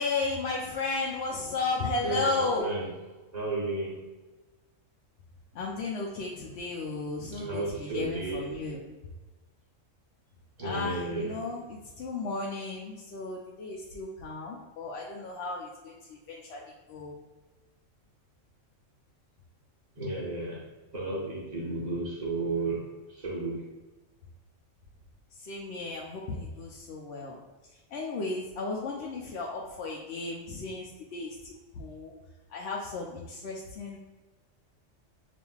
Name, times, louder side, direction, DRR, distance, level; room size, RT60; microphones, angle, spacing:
voice 1, 0.0-2.7 5.5-8.8 10.6-16.6 16.9-17.1 25.4-27.4 27.9-32.1 32.5-34.0, left 3 dB, 65° left, -2 dB, 0.8 m, -34 dB
voice 2, 2.0-2.9 3.3-4.0 6.3-6.5 6.9-8.5 10.6-11.5 20.0-23.6, right 2 dB, 35° right, -4 dB, 0.9 m, -33 dB
6.8 x 2.5 x 2.3 m, 1.2 s
omnidirectional pair, 1.3 m